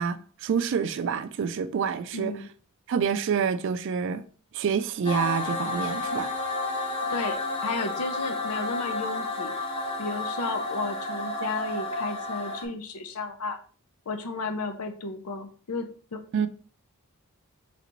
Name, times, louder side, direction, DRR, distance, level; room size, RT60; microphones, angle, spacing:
voice 1, 0.0-2.3 2.9-4.2 4.5-6.3 16.3-16.5, right 6 dB, 55° right, 0.3 m, -27 dB
voice 2, 2.1-2.5 7.1-9.5 10.0-13.6 14.1-16.2, left 3 dB, 90° left, 0.6 m, -33 dB
sound 1, 5.0-12.6, left 2 dB, 25° left, 0.6 m, -31 dB
3.9 x 3.3 x 3.0 m
head